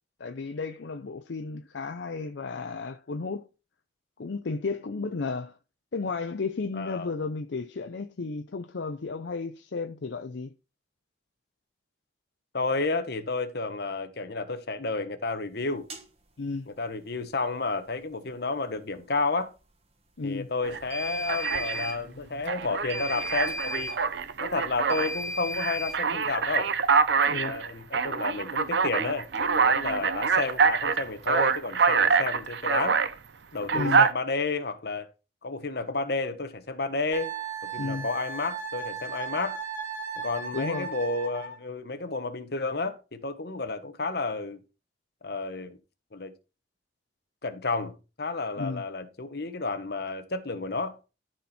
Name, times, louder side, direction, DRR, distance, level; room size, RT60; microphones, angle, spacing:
voice 1, 0.2-3.5 4.2-5.6 5.9-10.5 16.4-16.7 20.2-20.5 27.2-27.5 33.7-34.1 37.8-38.1 40.5-40.9 48.6-48.8, left 4 dB, 75° left, 0.6 m, -33 dB
voice 2, 6.7-7.1 12.5-15.8 16.7-19.5 20.2-24.0 24.4-26.7 27.2-33.0 33.5-35.1 35.4-37.3 37.7-39.6 40.2-44.6 45.2-45.8 46.1-46.3 47.4-51.0, left 3 dB, 60° left, 1.1 m, -31 dB
sound 1, 15.9-16.0 20.9-22.0 22.9-24.0 24.9-26.0, left 1 dB, 35° right, 1.6 m, -34 dB
Alarm, 20.6-20.8 21.3-22.0 22.5-25.1 25.5-33.1 33.6-34.1, right 5 dB, 65° right, 0.6 m, -25 dB
Wind instrument woodwind instrument, 37.1-41.6, right 5 dB, 10° left, 3.4 m, -36 dB
13.0 x 4.4 x 4.3 m
head